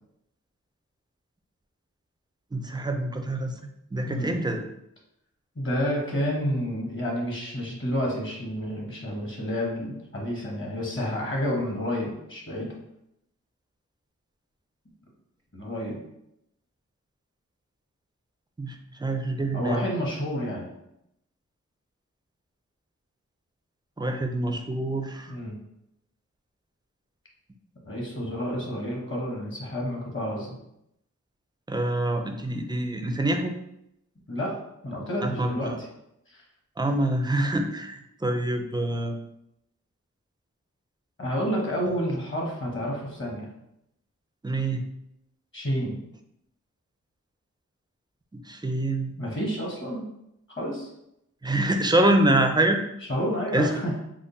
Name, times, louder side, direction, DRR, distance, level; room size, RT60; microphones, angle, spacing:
voice 1, 2.5-3.5 3.9-4.6 18.6-19.8 24.0-25.3 31.7-33.5 35.2-35.8 36.8-39.2 44.4-44.8 48.3-49.1 51.4-52.8 53.5-53.7, right 1 dB, 15° right, 4 dB, 0.4 m, -25 dB
voice 2, 5.6-12.7 15.5-16.0 19.5-20.7 25.3-25.5 27.8-30.5 34.3-34.5 34.8-35.9 36.3-36.4 41.2-43.5 45.5-46.0 49.2-50.0 50.5-50.9 53.1-54.0, equal, 40° left, -2 dB, 1.1 m, -29 dB
3.6 x 2.1 x 3.9 m, 0.80 s
wide cardioid pair, 70°, 31 cm